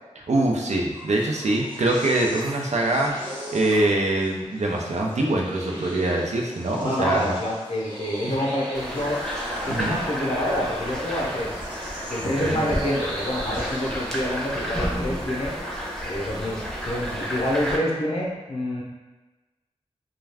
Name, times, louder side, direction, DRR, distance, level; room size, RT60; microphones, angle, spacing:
voice 1, 0.2-3.1 3.5-7.3 8.2-8.4 9.7-10.0 12.4-12.7, right 2 dB, 70° right, -1 dB, 0.5 m, -24 dB
sound 1, 0.8-14.9, equal, 40° right, 1.0 m, -39 dB
voice 2, 6.8-9.2 9.6-11.5 12.1-15.5 16.0-18.8, left 1 dB, 50° left, -3 dB, 0.6 m, -27 dB
sound 2, 8.7-17.8, equal, 5° left, 0.6 m, -31 dB
2.3 x 2.2 x 3.3 m, 1.2 s
wide cardioid pair, 55°, 12 cm